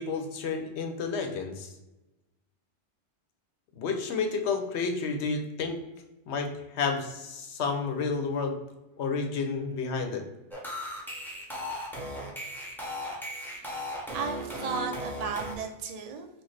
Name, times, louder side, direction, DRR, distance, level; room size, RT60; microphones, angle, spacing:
voice 1, 0.0-1.7 3.8-5.8 6.3-8.6 9.0-10.2, left 4 dB, 85° left, 5 dB, 1.0 m, -30 dB
sound 1, 10.5-15.6, equal, ahead, 0.8 m, -37 dB
voice 2, 13.6-13.9 14.1-16.3, right 5 dB, 50° right, 4 dB, 0.5 m, -35 dB
6.0 x 2.2 x 3.2 m, 1.0 s
omnidirectional pair, 1.1 m